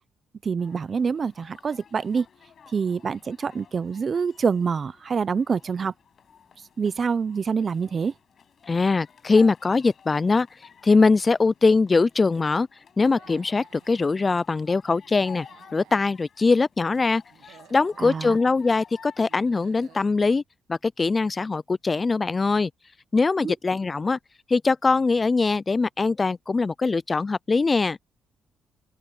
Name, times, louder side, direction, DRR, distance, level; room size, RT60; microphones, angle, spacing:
voice 1, 0.4-2.3 2.7-5.9 6.8-8.1 18.0-18.4 23.4-23.5, right 5 dB, 40° right, 0.7 m, -26 dB
sound 1, 0.6-20.0, left 7 dB, 50° left, 7.9 m, -52 dB
voice 2, 8.7-10.5 10.8-12.7 13.0-15.5 15.7-17.2 17.7-20.4 20.7-22.7 23.1-24.2 24.5-28.0, left 4 dB, 30° left, 0.3 m, -22 dB
Human voice / Animal, 13.1-13.9 15.0-16.0 17.3-18.1 19.3-20.1, right 12 dB, 85° right, 1.8 m, -53 dB
open air
cardioid pair, 90°, 0 cm